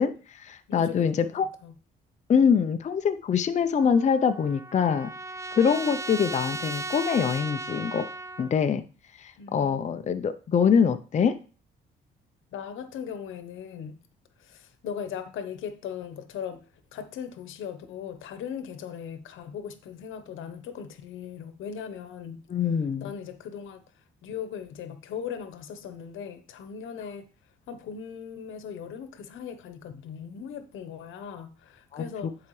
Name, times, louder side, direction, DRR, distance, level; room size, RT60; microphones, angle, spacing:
voice 1, 0.0-1.5 2.3-5.1 5.5-8.0 8.4-8.9 9.2-11.4 22.5-23.1 31.9-32.1, left 6 dB, 35° left, 0.5 m, -24 dB
voice 2, 0.7-1.7 9.4-10.2 12.5-14.0 14.4-16.6 16.9-22.4 23.0-23.8 24.2-27.3 27.7-32.3, left 7 dB, 80° left, 0.9 m, -39 dB
Trumpet, 3.8-8.5, right 2 dB, 15° right, 0.4 m, -36 dB
10.5 x 4.7 x 3.2 m
cardioid pair, 90°, 20 cm